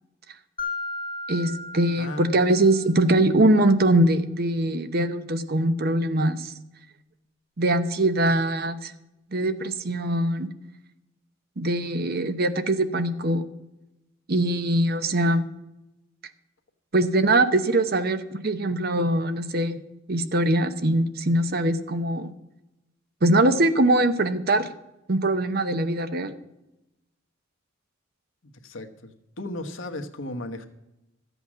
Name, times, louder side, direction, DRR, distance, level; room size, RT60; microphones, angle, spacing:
Mallet percussion, 0.6-3.1, left 2 dB, 25° left, 1.9 m, -35 dB
voice 1, 1.3-6.5 7.6-8.9 9.3-10.5 11.6-13.4 14.3-15.5 16.9-19.8 20.1-22.3 23.2-24.7 25.1-26.3, right 1 dB, 50° right, 10 dB, 0.8 m, -22 dB
voice 2, 2.0-2.4 28.4-29.1 29.4-30.7, left 1 dB, 80° left, 5 dB, 1.2 m, -35 dB
13.0 x 8.1 x 6.1 m, 0.95 s
head